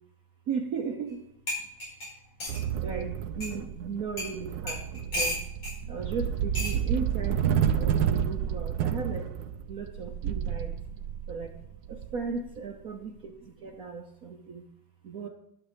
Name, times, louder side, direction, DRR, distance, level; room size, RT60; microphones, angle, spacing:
voice 1, 0.5-1.3 2.8-5.4 5.9-7.5 7.7-9.3 9.7-10.8 11.3-11.5 11.9-14.6 15.0-15.3, right 5 dB, 55° right, 2 dB, 1.2 m, -36 dB
sound 1, 1.1-1.2 1.5-2.6 3.4-3.5 4.2-4.3 4.7-5.8 6.5-6.8 7.9-8.2, left 1 dB, 80° left, 6.0 m, -33 dB
sound 2, 2.5-12.7, right 9 dB, 75° right, 1.4 m, -30 dB
12.5 x 7.3 x 5.0 m, 0.80 s
omnidirectional pair, 2.1 m